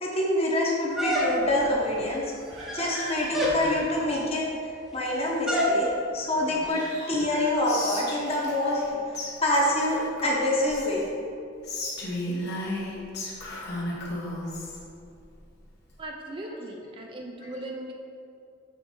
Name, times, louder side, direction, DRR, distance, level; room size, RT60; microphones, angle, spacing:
voice 1, 0.0-2.3 2.7-4.5 4.9-8.8 9.4-11.1, left 1 dB, 30° left, -3 dB, 1.0 m, -26 dB
sound 1, 1.0-1.7 2.5-3.0 3.3-3.6 5.5-5.8, equal, ahead, 0.8 m, -26 dB
sound 2, 1.6-4.7 6.3-8.3, right 1 dB, 75° right, 1.4 m, -41 dB
Whispering, 7.6-8.9 9.1-9.3 9.5-11.1 11.6-14.8, left 1 dB, 60° left, 1.2 m, -34 dB
voice 2, 16.0-17.9, right 1 dB, 25° right, 0 dB, 0.4 m, -38 dB
6.7 x 3.8 x 3.8 m, 2.5 s
head